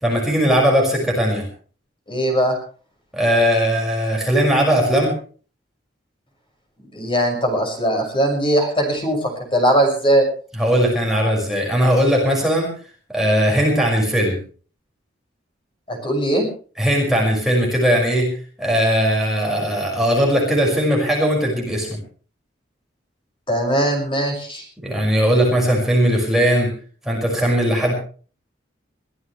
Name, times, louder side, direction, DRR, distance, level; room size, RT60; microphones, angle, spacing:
voice 1, 0.0-1.5 3.1-5.2 10.6-12.7 13.1-14.4 16.8-18.3 18.6-21.9 24.8-26.7 27.0-27.9, equal, ahead, -2 dB, 5.6 m, -18 dB
voice 2, 2.1-2.6 6.9-10.3 15.9-16.4 23.5-24.6, right 1 dB, 30° left, 2 dB, 6.2 m, -20 dB
23.0 x 16.5 x 3.3 m, 0.41 s
head